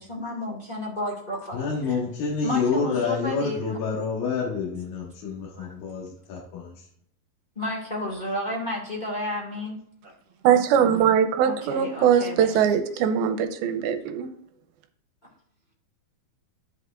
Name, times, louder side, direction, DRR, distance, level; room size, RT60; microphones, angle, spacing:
voice 1, 0.0-2.0 2.4-3.8 5.5-5.7 7.5-9.8 10.0-10.1 11.4-13.0, left 1 dB, 40° left, -3 dB, 0.6 m, -32 dB
voice 2, 1.5-6.7, left 5 dB, 65° left, -4 dB, 3.2 m, -28 dB
voice 3, 10.4-14.3, right 8 dB, 80° right, 7 dB, 2.6 m, -21 dB
11.0 x 7.8 x 2.5 m, 0.67 s
omnidirectional pair, 4.5 m